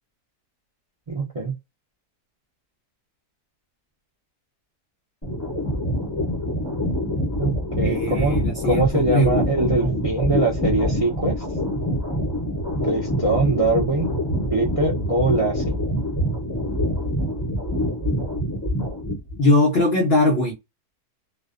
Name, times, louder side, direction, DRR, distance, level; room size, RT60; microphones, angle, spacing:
voice 1, 1.1-1.5 7.4-11.4 12.8-14.1 14.5-15.8, right 2 dB, 40° right, 0.4 m, -23 dB
sound 1, 5.2-19.4, equal, 20° left, 0.5 m, -25 dB
voice 2, 7.8-9.5 9.8-10.0 19.4-20.5, left 1 dB, 65° left, 0.6 m, -21 dB
2.6 x 2.1 x 2.4 m
omnidirectional pair, 1.7 m